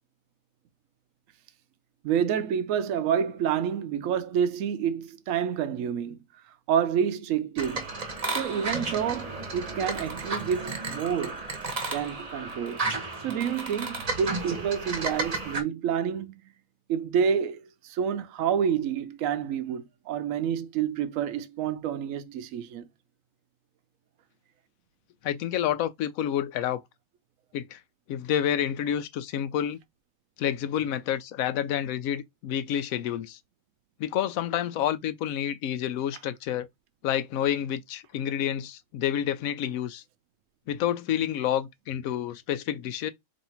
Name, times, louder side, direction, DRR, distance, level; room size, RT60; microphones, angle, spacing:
voice 1, 2.0-6.2 6.7-7.9 8.3-11.5 11.9-12.9 13.2-16.4 16.9-22.9, right 8 dB, 80° right, 1.0 m, -28 dB
sound 1, 7.6-15.6, right 3 dB, 35° right, 0.8 m, -33 dB
voice 2, 25.2-26.8 27.5-27.8 28.1-29.8 30.4-33.4 34.0-36.7 37.0-40.0 40.7-43.1, left 10 dB, 90° left, 1.0 m, -29 dB
3.1 x 2.6 x 4.3 m
omnidirectional pair, 1.4 m